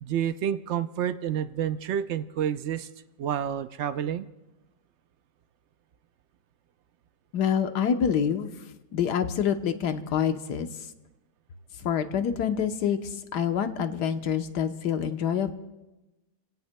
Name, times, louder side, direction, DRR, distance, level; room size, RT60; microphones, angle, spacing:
voice 1, 0.0-2.9 3.2-4.3, right 9 dB, 75° right, 10 dB, 0.6 m, -29 dB
voice 2, 7.3-8.5 8.9-10.7 11.8-15.5, left 8 dB, 75° left, 7 dB, 1.5 m, -26 dB
30.0 x 17.0 x 2.2 m, 1.0 s
omnidirectional pair, 1.9 m